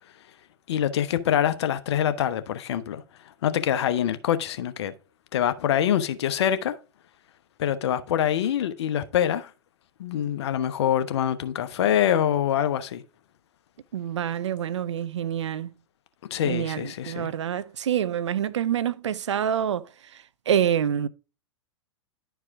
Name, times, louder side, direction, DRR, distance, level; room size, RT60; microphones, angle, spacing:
voice 1, 0.7-3.0 3.4-4.9 5.3-6.7 7.6-9.5 10.0-13.0 16.3-17.3, left 10 dB, 65° left, 0.9 m, -25 dB
voice 2, 13.9-15.7 16.4-19.9 20.1-21.1, right 9 dB, 75° right, 0.7 m, -27 dB
11.0 x 4.7 x 3.6 m
hypercardioid pair, 105°, 15 cm